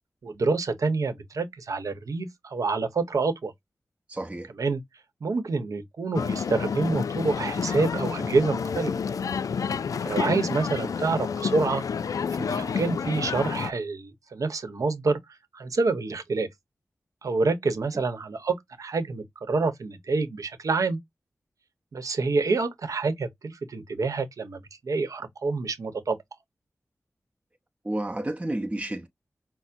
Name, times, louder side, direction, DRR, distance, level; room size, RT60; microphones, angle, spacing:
voice 1, 0.2-3.5 4.6-4.8 5.2-8.9 10.0-11.8 12.4-15.2 15.5-16.5 17.2-21.0 21.9-26.2, right 3 dB, 85° right, 0.9 m, -27 dB
voice 2, 4.1-4.5 27.8-29.1, right 1 dB, 20° right, 0.7 m, -31 dB
sound 1, 6.1-13.7, left 6 dB, 85° left, 0.3 m, -29 dB
5.7 x 2.0 x 2.5 m
wide cardioid pair, 65°, 6 cm